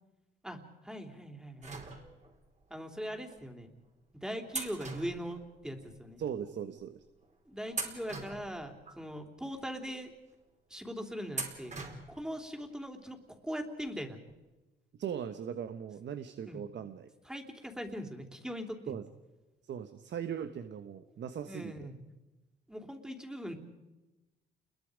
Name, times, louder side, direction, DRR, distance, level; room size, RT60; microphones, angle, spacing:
voice 1, 0.8-1.8 2.7-3.7 4.2-6.2 7.5-10.1 10.7-11.8 12.1-14.2 16.5-16.7 17.3-18.9 21.5-22.0 22.7-23.5, equal, 5° right, 5 dB, 3.5 m, -41 dB
sound 1, 1.6-2.5 3.3-3.4 4.5-5.9 6.2-6.3 7.1-7.3 7.7-9.0 9.5-9.6 11.3-12.3 12.6-12.7 13.9-14.0 14.3-14.4, right 3 dB, 35° right, 4.7 m, -41 dB
voice 2, 6.2-7.0 15.0-17.1 18.9-19.0 19.7-21.9, right 8 dB, 65° right, 10 dB, 1.3 m, -39 dB
29.5 x 22.0 x 5.2 m, 1.1 s
cardioid pair, 90°, 20 cm